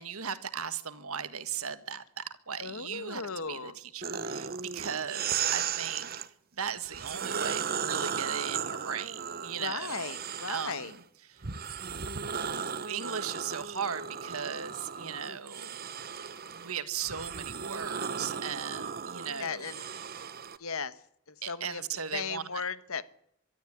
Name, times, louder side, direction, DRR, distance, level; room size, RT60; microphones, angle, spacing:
voice 1, 0.0-3.2 3.5-6.1 6.6-10.1 10.5-10.9 11.3-11.4 12.8-15.8 16.5-19.7 21.4-22.4, right 7 dB, 75° right, 11 dB, 1.7 m, -37 dB
voice 2, 2.6-3.8 9.6-10.9 19.4-19.9 20.6-21.0 21.3-21.8 22.1-23.0, left 5 dB, 70° left, 14 dB, 1.2 m, -36 dB
sound 1, 4.0-6.3 6.9-11.0 11.4-20.6, right 7 dB, 45° right, 1.0 m, -36 dB
23.5 x 12.5 x 9.8 m, 0.72 s
head